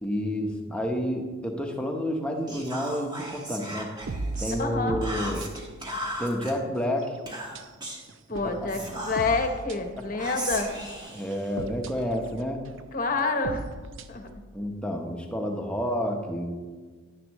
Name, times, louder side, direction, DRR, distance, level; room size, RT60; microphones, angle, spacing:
voice 1, 0.0-3.9 4.4-5.4 6.2-7.2 8.4-8.7 9.9-10.0 11.1-12.6 14.5-16.6, equal, 5° left, 1 dB, 1.0 m, -30 dB
Whispering, 2.5-4.6 5.0-6.5 7.3-8.1 8.7-9.6 10.2-12.1, right 1 dB, 20° right, 1.3 m, -37 dB
sound 1, 4.0-6.4 6.8-7.2 7.5-7.7 8.1-10.7 11.0-14.4, right 2 dB, 70° right, 0.6 m, -38 dB
voice 2, 4.6-5.1 8.3-10.7 12.9-13.6 14.1-14.3, left 3 dB, 40° left, 5 dB, 1.0 m, -28 dB
11.5 x 9.9 x 3.1 m, 1.4 s
head